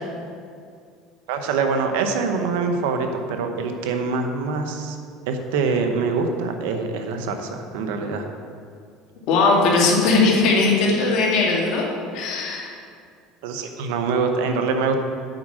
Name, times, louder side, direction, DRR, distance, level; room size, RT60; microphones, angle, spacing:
voice 1, 1.3-5.0 5.3-8.3 13.4-15.0, right 4 dB, 80° right, 5 dB, 1.0 m, -24 dB
voice 2, 9.3-11.9 12.1-12.7, left 3 dB, 65° left, -2 dB, 2.2 m, -19 dB
7.9 x 6.2 x 7.6 m, 2.2 s
supercardioid pair, 100°, 0 cm